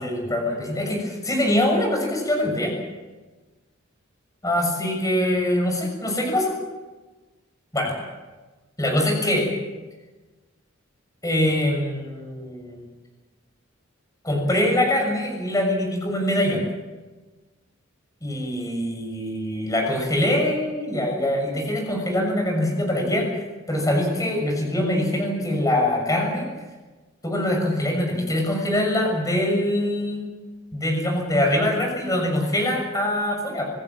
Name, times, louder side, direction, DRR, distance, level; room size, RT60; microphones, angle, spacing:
voice 1, 0.0-2.7 4.4-6.6 7.7-7.9 8.8-9.5 11.2-12.8 14.2-16.6 18.2-23.3 23.7-26.5 27.2-30.3 30.7-33.7, left 1 dB, 15° left, 2 dB, 6.6 m, -23 dB
27.0 x 16.5 x 7.5 m, 1.2 s
head